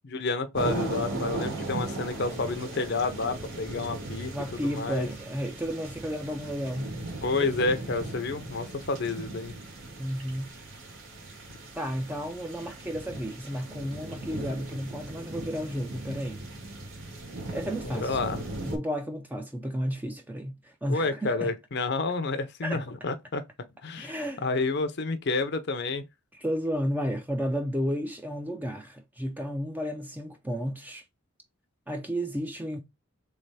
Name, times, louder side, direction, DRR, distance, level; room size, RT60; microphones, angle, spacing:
voice 1, 0.0-5.1 7.2-9.6 17.8-18.4 20.9-23.4 23.8-24.2 24.4-26.0, left 3 dB, 55° left, 0.6 m, -30 dB
sound 1, 0.5-18.8, right 2 dB, 80° right, 1.7 m, -38 dB
voice 2, 4.3-6.9 10.0-10.5 11.8-16.5 17.5-21.5 22.6-22.8 24.0-24.4 26.4-31.0 31.9-32.8, equal, 10° right, 0.5 m, -32 dB
3.5 x 3.3 x 4.1 m
head